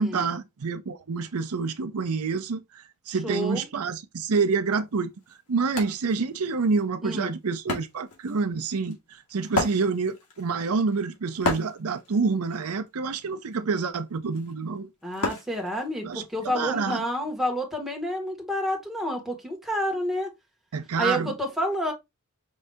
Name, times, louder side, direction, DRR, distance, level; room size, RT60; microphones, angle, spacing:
voice 1, 0.0-5.1 5.5-14.9 16.0-17.0 20.7-21.3, right 4 dB, 75° right, 0.6 m, -27 dB
voice 2, 3.2-3.7 7.0-7.3 15.0-20.3 21.0-21.9, equal, ahead, 1.4 m, -29 dB
Wood, 4.7-4.8 5.2-16.4, left 2 dB, 80° left, 1.9 m, -35 dB
5.4 x 2.7 x 3.4 m
head